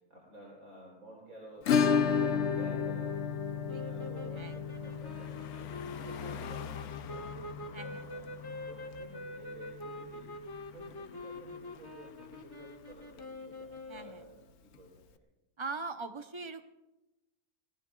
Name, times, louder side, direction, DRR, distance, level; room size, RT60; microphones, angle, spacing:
voice 1, 0.1-5.7 6.0-8.2 8.6-10.3 10.7-15.0, right 1 dB, 70° right, -3 dB, 4.2 m, -53 dB
Acoustic guitar / Strum, 1.7-10.3 10.5-10.6 10.9-11.0 11.4-11.5 13.5-13.6 14.7-14.8, left 7 dB, 60° left, 0.8 m, -33 dB
Car passing by, 2.9-13.3, left 8 dB, 85° left, 1.2 m, -49 dB
sound 1, 3.7-14.4, left 1 dB, 15° left, 1.2 m, -45 dB
voice 2, 7.7-8.2 13.9-14.2 15.6-16.6, right 3 dB, 30° right, 8 dB, 0.6 m, -41 dB
27.5 x 18.5 x 2.4 m, 1.0 s
omnidirectional pair, 1.5 m